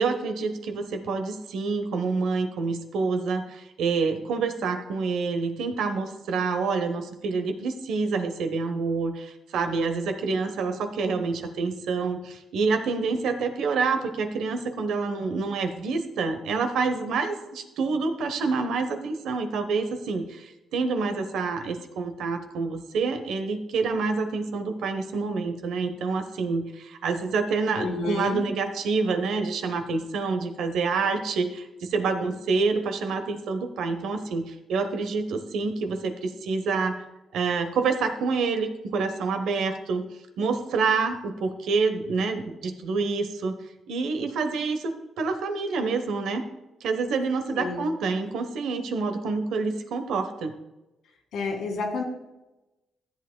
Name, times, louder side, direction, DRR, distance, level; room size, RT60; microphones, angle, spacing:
voice 1, 0.0-37.0 37.3-40.0 40.4-43.6 43.9-46.4 46.8-50.5, right 4 dB, 80° right, 7 dB, 1.0 m, -27 dB
voice 2, 27.8-28.5 47.6-47.8 51.3-52.0, left 3 dB, 80° left, 2 dB, 1.9 m, -29 dB
14.0 x 7.9 x 2.2 m, 1.0 s
cardioid pair, 110°, 0 cm